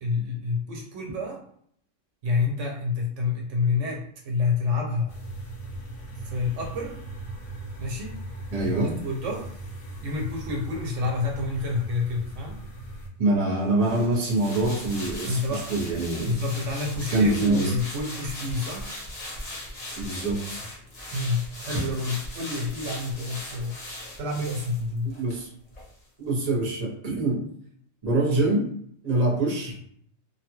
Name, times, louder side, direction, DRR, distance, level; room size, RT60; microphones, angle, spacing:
voice 1, 0.0-1.4 2.2-5.2 6.2-7.0 7.8-8.2 8.6-8.7 9.0-9.5 10.0-12.6 15.3-15.6 16.2-18.9 21.1-23.8 24.2-25.2, left 3 dB, 75° right, 0 dB, 0.9 m, -28 dB
sound 1, 5.1-13.1, right 1 dB, 60° left, 0.9 m, -39 dB
voice 2, 8.5-8.9 13.2-16.4 17.1-17.7 19.9-20.6 25.0-25.5 26.2-27.4 28.0-28.6 29.0-29.8, right 2 dB, 35° right, -2 dB, 0.8 m, -25 dB
sound 2, 13.8-25.4 25.7-25.9, left 1 dB, 35° left, 0.9 m, -39 dB
2.6 x 2.3 x 2.9 m, 0.65 s
omnidirectional pair, 1.3 m